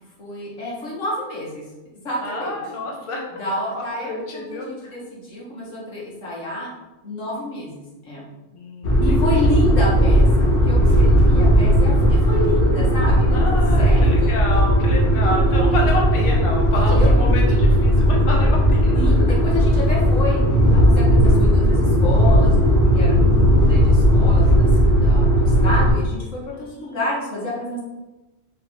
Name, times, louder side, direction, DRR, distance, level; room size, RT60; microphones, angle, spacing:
voice 1, 0.2-1.6 2.0-2.6 3.4-6.7 7.0-8.3 9.0-14.3 16.8-17.3 19.0-20.4 20.7-27.8, left 1 dB, 85° left, -4 dB, 1.7 m, -29 dB
voice 2, 2.2-3.3 4.0-5.0 8.5-9.2 13.3-19.2 26.5-27.0, left 1 dB, 30° left, 0 dB, 0.7 m, -29 dB
sound 1, 8.8-25.9, equal, 50° left, 1.1 m, -16 dB
4.5 x 3.2 x 3.6 m, 1.1 s
omnidirectional pair, 1.3 m